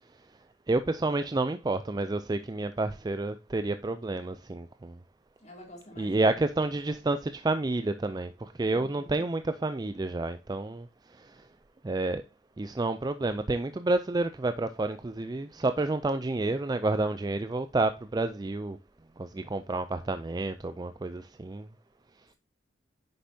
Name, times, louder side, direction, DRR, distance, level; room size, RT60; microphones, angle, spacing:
voice 1, 0.7-5.0 6.0-11.5 11.8-12.2 12.6-18.8 19.2-21.7, right 2 dB, 20° right, 0.4 m, -30 dB
voice 2, 5.4-6.3 6.9-7.0, equal, 40° left, 3.3 m, -49 dB
9.5 x 6.9 x 2.7 m
head